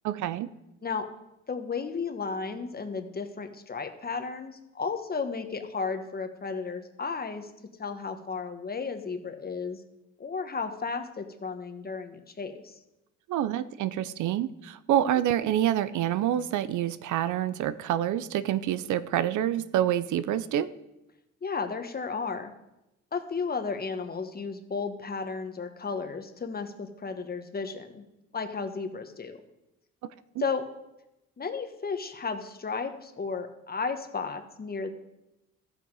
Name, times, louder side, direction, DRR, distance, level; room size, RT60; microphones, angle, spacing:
voice 1, 0.0-0.5 13.3-20.7, right 11 dB, 80° right, 16 dB, 0.6 m, -27 dB
voice 2, 1.5-7.5 7.8-9.8 10.2-12.8 14.9-15.2 21.4-22.5 23.1-28.0 28.3-29.4 30.4-30.7 31.4-34.9, left 5 dB, 30° left, 6 dB, 1.3 m, -34 dB
13.5 x 7.5 x 4.8 m, 0.92 s
cardioid pair, 90°, 30 cm